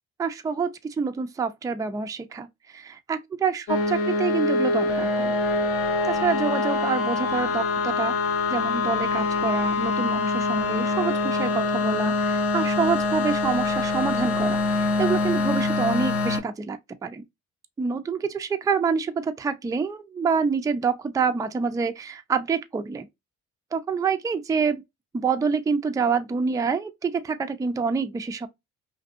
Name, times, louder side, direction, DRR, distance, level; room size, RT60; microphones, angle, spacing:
voice 1, 0.2-0.7 1.0-5.4 6.0-8.1 8.5-17.2 17.8-23.1 23.7-24.8 25.1-28.5, right 5 dB, 10° right, 0.3 m, -27 dB
sound 1, 3.7-16.4, left 3 dB, 50° left, 0.7 m, -24 dB
2.6 x 2.5 x 2.4 m
cardioid pair, 90°, 30 cm